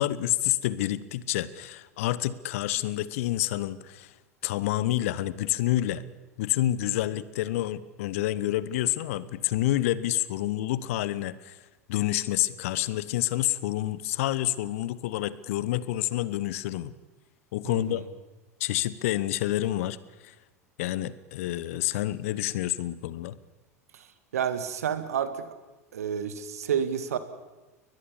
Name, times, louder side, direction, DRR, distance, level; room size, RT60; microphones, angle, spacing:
voice 1, 0.0-4.1 4.4-6.0 6.4-11.6 11.9-16.9 17.5-18.0 18.6-20.0 20.2-20.3 20.8-23.4, left 14 dB, 60° left, 18 dB, 1.0 m, -28 dB
voice 2, 17.6-18.0 23.9-24.1 24.3-25.6 25.9-27.2, right 8 dB, 70° right, 12 dB, 2.0 m, -30 dB
21.5 x 21.0 x 7.2 m, 1.1 s
figure-of-eight pair, 80°, 8 cm